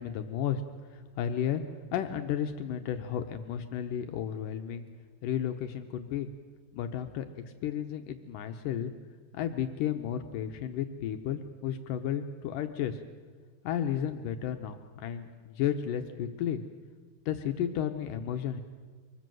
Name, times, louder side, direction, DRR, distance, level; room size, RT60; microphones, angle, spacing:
voice 1, 0.0-1.6 1.9-4.9 5.2-6.3 6.7-8.9 9.3-13.0 13.6-16.6 17.3-18.6, left 9 dB, 90° left, 7 dB, 1.8 m, -33 dB
25.0 x 21.5 x 7.8 m, 1.5 s
omnidirectional pair, 5.2 m